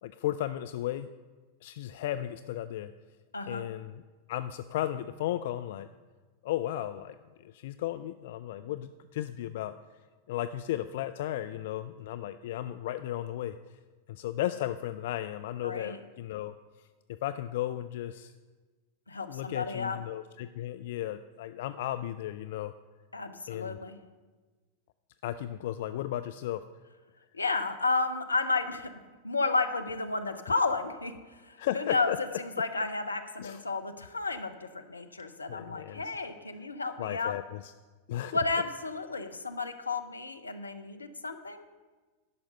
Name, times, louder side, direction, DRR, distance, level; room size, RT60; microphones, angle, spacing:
voice 1, 0.0-1.1 1.6-2.9 3.5-4.0 4.3-5.9 6.4-9.7 10.3-13.6 14.1-16.5 17.1-18.3 19.3-22.7 23.5-23.8 25.2-26.6 31.6-32.2 33.4-33.6 35.5-36.2 37.0-37.7 38.1-38.4, left 13 dB, 55° left, 11 dB, 0.3 m, -35 dB
voice 2, 3.3-3.6 15.6-16.0 19.1-20.0 23.1-24.0 27.3-28.9 29.2-31.2 31.4-32.1 32.4-37.3 38.3-41.7, left 3 dB, 80° left, 7 dB, 0.7 m, -32 dB
11.0 x 5.7 x 6.5 m, 1.3 s
figure-of-eight pair, 90°, 0 cm